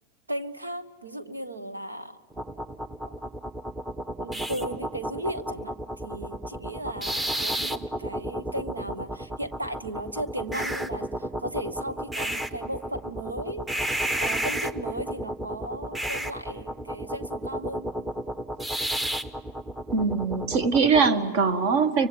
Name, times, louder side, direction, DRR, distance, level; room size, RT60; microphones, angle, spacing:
voice 1, 0.3-2.2 3.0-3.1 4.2-13.7 14.2-18.1, right 1 dB, 85° right, 12 dB, 1.3 m, -36 dB
sound 1, 2.3-21.1, right 1 dB, 10° right, 1.0 m, -32 dB
voice 2, 19.9-22.1, right 5 dB, 55° right, 12 dB, 1.8 m, -22 dB
30.0 x 25.0 x 7.5 m, 1.4 s
figure-of-eight pair, 90°, 0 cm